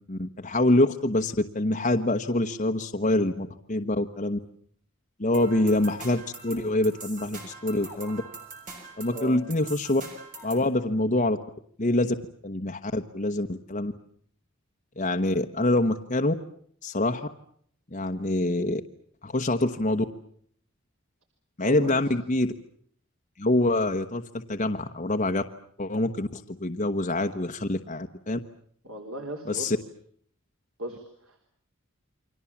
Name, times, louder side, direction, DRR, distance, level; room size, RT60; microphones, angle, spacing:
voice 1, 0.1-4.4 5.2-8.2 9.0-10.0 10.4-11.4 11.8-12.1 12.4-13.9 15.0-16.3 16.8-17.3 17.9-18.8 19.2-20.0 21.6-22.5 23.4-25.4 25.8-28.4 29.5-29.8, left 1 dB, 35° left, 5 dB, 1.2 m, -25 dB
sound 1, 5.3-10.7, right 3 dB, 40° right, 6.7 m, -43 dB
voice 2, 9.0-9.4 21.6-22.1 28.8-29.7 30.8-31.4, right 2 dB, 70° right, 4 dB, 4.0 m, -37 dB
29.5 x 24.0 x 7.3 m, 0.64 s
head